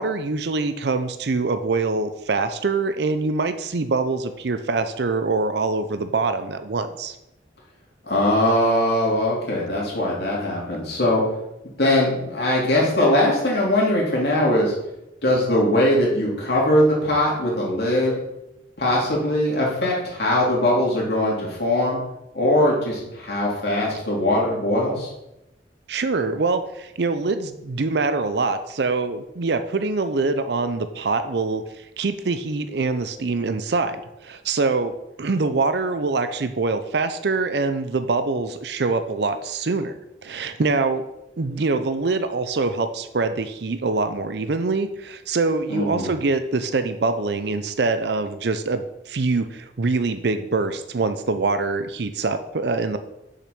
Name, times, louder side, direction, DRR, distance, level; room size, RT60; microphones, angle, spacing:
voice 1, 0.0-7.2 25.9-41.1 41.4-53.0, right 3 dB, 60° right, 9 dB, 0.5 m, -24 dB
voice 2, 8.1-11.2 11.8-14.7 15.2-18.1 18.8-22.0 22.3-25.1 45.7-46.1, left 1 dB, 60° left, -4 dB, 3.1 m, -21 dB
6.7 x 6.1 x 5.9 m, 0.88 s
head